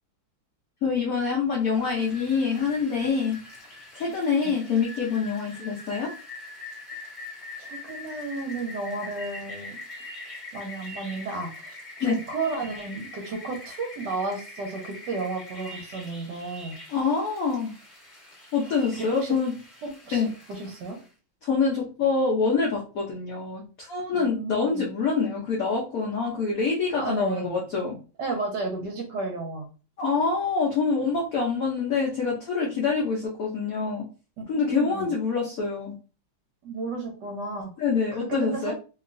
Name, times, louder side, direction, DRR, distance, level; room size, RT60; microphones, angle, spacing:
voice 1, 0.8-3.4 3.9-6.1 12.0-12.2 16.9-17.7 18.5-19.5 20.1-20.3 21.4-28.0 30.0-34.0 34.5-36.0 37.8-38.7, left 5 dB, 80° left, -2 dB, 0.7 m, -26 dB
Rain, 1.6-21.1, left 2 dB, 20° left, 1.0 m, -43 dB
voice 2, 7.6-9.8 10.5-16.8 18.9-19.3 19.8-21.0 24.1-24.9 27.0-27.5 28.2-29.7 34.5-35.1 36.6-37.7 38.1-38.7, right 3 dB, 65° right, 2 dB, 1.1 m, -33 dB
3.0 x 2.8 x 2.5 m, 0.35 s
omnidirectional pair, 2.3 m